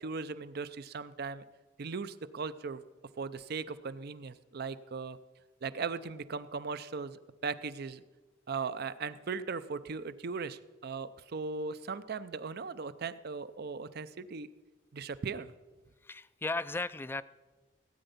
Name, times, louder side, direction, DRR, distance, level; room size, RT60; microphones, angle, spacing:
voice 1, 0.0-1.4 1.8-2.8 3.2-5.2 5.6-8.0 8.5-14.5 14.9-15.5, right 4 dB, 55° right, 15 dB, 0.5 m, -38 dB
voice 2, 16.0-17.2, left 2 dB, 10° left, 16 dB, 0.3 m, -35 dB
17.0 x 9.0 x 5.2 m, 1.2 s
head